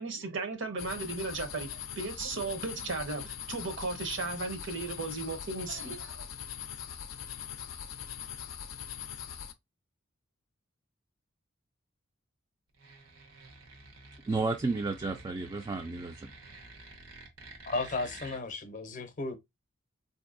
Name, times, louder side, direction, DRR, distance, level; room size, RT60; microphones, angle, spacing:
voice 1, 0.0-6.3, right 3 dB, 65° right, 0.7 m, -36 dB
sound 1, 0.8-9.5, left 9 dB, 80° left, 0.4 m, -41 dB
sound 2, 12.7-18.4, right 2 dB, 90° right, 0.9 m, -50 dB
voice 2, 14.3-16.3, right 3 dB, 20° right, 0.3 m, -32 dB
voice 3, 17.7-19.4, left 3 dB, 40° left, 0.6 m, -34 dB
3.8 x 2.6 x 2.5 m
head